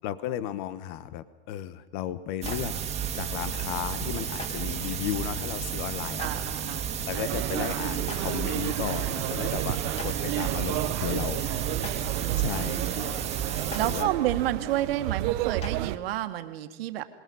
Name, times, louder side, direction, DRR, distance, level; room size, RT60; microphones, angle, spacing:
voice 1, 0.0-2.8 3.1-6.3 7.1-9.8 10.0-11.5 12.4-13.2 13.8-14.1, left 12 dB, 50° left, 15 dB, 1.1 m, -34 dB
Clapping, 2.4-2.6 4.4-4.5 6.2-6.3 8.1-8.2 10.0-10.1 11.8-11.9 13.7-13.8 15.6-15.7, left 3 dB, 20° left, 2.7 m, -37 dB
sound 1, 2.4-14.0, right 8 dB, 20° right, 2.1 m, -32 dB
voice 2, 6.2-7.7 9.9-10.6 12.2-13.0 13.7-17.1, right 13 dB, 65° right, 8 dB, 2.0 m, -31 dB
sound 2, 7.3-16.0, right 16 dB, 45° right, 0.9 m, -32 dB
27.0 x 21.0 x 5.6 m, 1.1 s
supercardioid pair, 135°, 32 cm